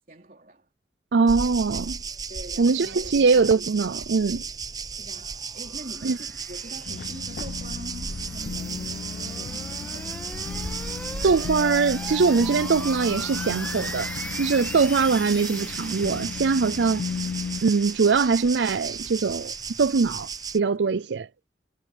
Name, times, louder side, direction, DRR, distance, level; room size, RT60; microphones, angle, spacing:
voice 1, 0.1-0.7 2.3-3.2 4.9-10.3 20.8-21.1, right 1 dB, 50° right, 3.8 m, -44 dB
voice 2, 1.1-2.0 2.6-4.4 6.0-6.2 11.2-14.1 14.4-17.0 17.6-20.3 20.5-21.3, right 4 dB, 80° right, 0.5 m, -22 dB
sound 1, 1.3-20.6, right 5 dB, 20° right, 0.7 m, -35 dB
sound 2, 4.6-20.6, left 2 dB, 10° left, 1.6 m, -41 dB
sound 3, 6.8-17.6, left 6 dB, 60° left, 0.3 m, -36 dB
head